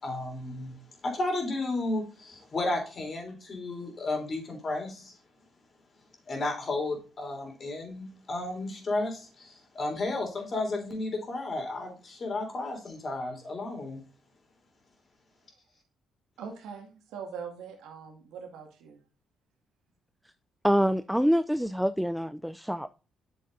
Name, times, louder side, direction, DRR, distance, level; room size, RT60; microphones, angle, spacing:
voice 1, 0.0-0.8 1.0-5.2 6.3-14.0, left 2 dB, 40° left, 2 dB, 3.4 m, -33 dB
voice 2, 16.4-19.0, right 6 dB, 90° right, 3 dB, 2.0 m, -42 dB
voice 3, 20.6-22.9, equal, ahead, 13 dB, 0.3 m, -26 dB
8.6 x 6.7 x 2.6 m, 0.36 s
cardioid pair, 90°, 0 cm